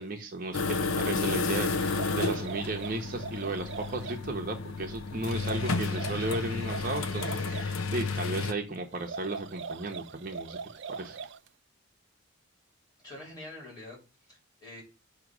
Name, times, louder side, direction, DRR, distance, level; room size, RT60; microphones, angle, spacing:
voice 1, 0.0-10.6 10.9-11.3, right 2 dB, 40° right, 3 dB, 0.9 m, -35 dB
sound 1, 0.5-8.5, left 4 dB, 80° left, 0.6 m, -31 dB
sound 2, 1.8-4.3 5.3-7.8 8.9-11.5, right 5 dB, 55° right, 0.4 m, -41 dB
voice 2, 13.0-14.8, left 1 dB, 20° left, -3 dB, 3.3 m, -46 dB
7.9 x 2.9 x 6.0 m, 0.30 s
head